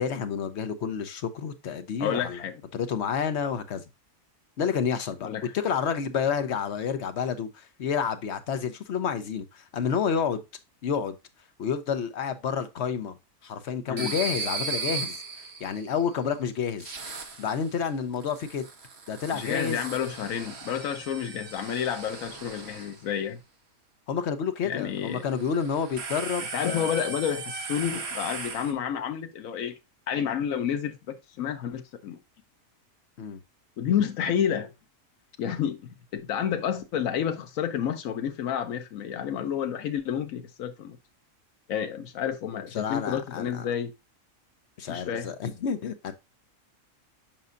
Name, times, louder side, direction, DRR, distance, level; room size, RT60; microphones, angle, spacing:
voice 1, 0.0-2.4 2.7-3.8 4.6-10.4 10.8-11.2 11.6-13.2 13.4-17.0 17.4-18.7 19.1-19.8 24.1-26.9 33.2-33.4 42.7-43.6 44.8-46.1, left 7 dB, 60° left, 1.0 m, -29 dB
voice 2, 2.0-2.5 5.2-5.5 13.9-14.1 19.3-23.4 24.6-25.2 26.5-29.8 30.1-32.2 33.8-34.7 35.4-41.0 41.7-43.9 44.9-45.3, left 8 dB, 80° left, 1.2 m, -30 dB
sound 1, 14.0-16.0 16.8-17.7 18.2-23.0 25.2-28.7, right 4 dB, 55° right, 1.3 m, -37 dB
7.5 x 5.4 x 2.5 m
omnidirectional pair, 1.4 m